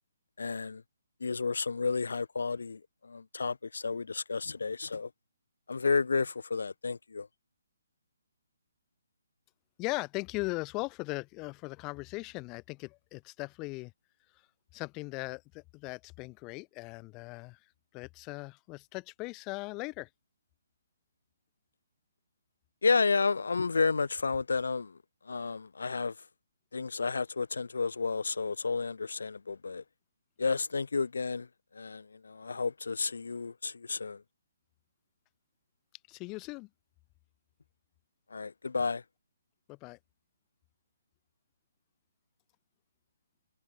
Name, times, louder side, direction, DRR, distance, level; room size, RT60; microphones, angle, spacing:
voice 1, 0.4-0.8 1.2-5.1 5.7-7.3 22.8-24.9 25.3-26.1 26.7-29.8 30.4-31.5 31.7-34.2 38.3-39.0, left 4 dB, 75° left, 1.0 m, -31 dB
voice 2, 9.8-13.9 14.7-17.6 17.9-20.1 36.1-36.7 39.7-40.0, left 25 dB, 25° left, 2.7 m, -39 dB
figure-of-eight pair, 145°, 0 cm